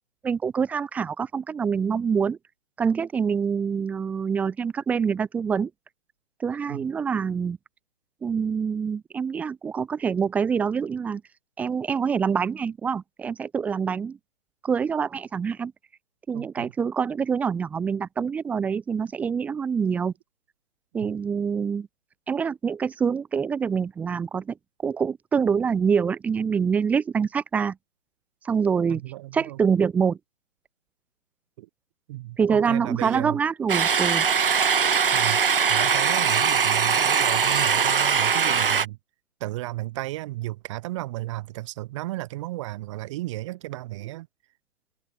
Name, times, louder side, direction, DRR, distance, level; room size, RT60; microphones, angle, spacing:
voice 1, 0.2-2.4 2.8-5.7 6.4-7.6 8.2-11.2 11.6-14.2 14.6-15.7 16.3-20.1 20.9-21.9 22.3-24.5 24.8-27.7 28.4-29.0 29.3-30.2 32.4-34.3, right 6 dB, 5° right, 1.5 m, -25 dB
voice 2, 16.3-16.7 28.9-29.6 31.6-31.7 32.1-33.4 35.1-35.4 35.7-39.0 39.4-44.3, right 17 dB, 20° right, 6.4 m, -34 dB
sound 1, 33.7-38.9, right 6 dB, 40° right, 1.0 m, -21 dB
figure-of-eight pair, 155°, 42 cm